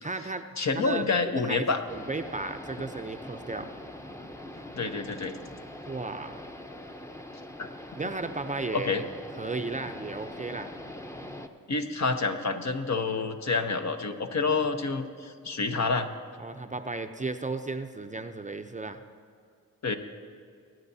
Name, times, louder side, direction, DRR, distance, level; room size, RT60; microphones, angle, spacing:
voice 1, 0.0-0.5 0.7-1.0 1.4-1.7 1.9-3.7 5.9-6.4 8.0-9.0 9.4-10.7 16.4-19.0, right 3 dB, 20° right, 7 dB, 0.6 m, -34 dB
voice 2, 0.6-1.8 4.7-5.4 8.7-9.0 11.7-16.1 19.8-20.0, left 4 dB, 50° left, 5 dB, 1.1 m, -28 dB
sound 1, 1.9-11.5, left 1 dB, 10° left, 0.8 m, -43 dB
21.5 x 9.3 x 2.8 m, 2.4 s
cardioid pair, 50°, 34 cm